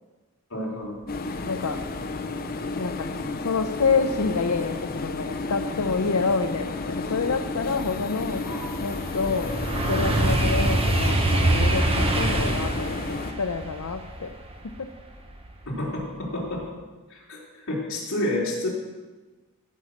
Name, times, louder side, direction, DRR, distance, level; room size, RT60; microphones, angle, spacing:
voice 1, 0.5-0.9 8.5-8.6 15.7-16.7 17.1-17.4 17.7-18.7, left 1 dB, 65° left, -4 dB, 3.8 m, -29 dB
sound 1, 1.1-13.3, left 3 dB, 45° left, 0.8 m, -32 dB
voice 2, 1.4-1.8 2.7-3.1 3.4-8.5 8.8-9.6 9.9-14.3 14.7-14.9, left 4 dB, 80° left, 6 dB, 0.7 m, -27 dB
sound 2, 6.2-6.3 6.7-15.8 16.2-16.6, right 1 dB, 25° right, 1.2 m, -25 dB
15.5 x 6.3 x 6.6 m, 1.2 s
head